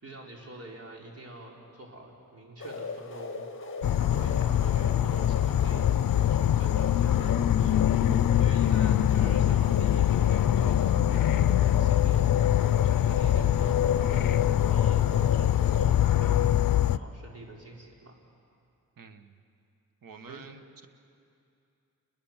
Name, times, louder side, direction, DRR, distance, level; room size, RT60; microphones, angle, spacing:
voice 1, 0.0-3.7 4.0-12.5 12.8-18.2 20.3-20.4, right 2 dB, 45° right, -1 dB, 4.4 m, -47 dB
sound 1, 2.6-15.9, left 4 dB, 35° left, 1.9 m, -38 dB
Insect / Frog, 3.8-17.0, left 11 dB, 70° left, 0.6 m, -23 dB
voice 2, 19.0-19.4 20.0-20.9, right 5 dB, 75° right, 8 dB, 1.5 m, -48 dB
29.0 x 21.5 x 7.4 m, 2.5 s
wide cardioid pair, 120°, 34 cm